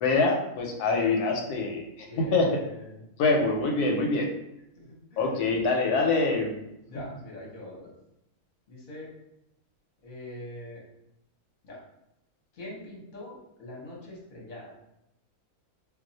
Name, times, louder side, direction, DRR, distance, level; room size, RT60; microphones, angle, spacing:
voice 1, 0.0-1.8 2.2-2.5 3.2-4.3 5.2-6.6, left 3 dB, 80° left, 1 dB, 1.1 m, -24 dB
voice 2, 2.0-3.1 4.8-5.6 6.9-7.8 8.7-9.1 10.0-10.8 11.6-11.8 12.5-14.7, left 1 dB, 40° left, -4 dB, 0.8 m, -43 dB
2.3 x 2.3 x 3.8 m, 0.83 s
omnidirectional pair, 1.6 m